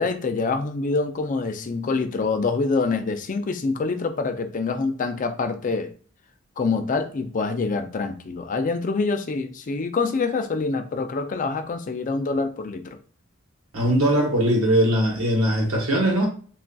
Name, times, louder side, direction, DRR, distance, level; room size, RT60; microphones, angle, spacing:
voice 1, 0.0-5.9 6.6-13.0, left 4 dB, 40° left, 0.4 m, -26 dB
voice 2, 13.7-16.3, right 1 dB, 85° right, 1.1 m, -20 dB
3.7 x 2.4 x 2.2 m
head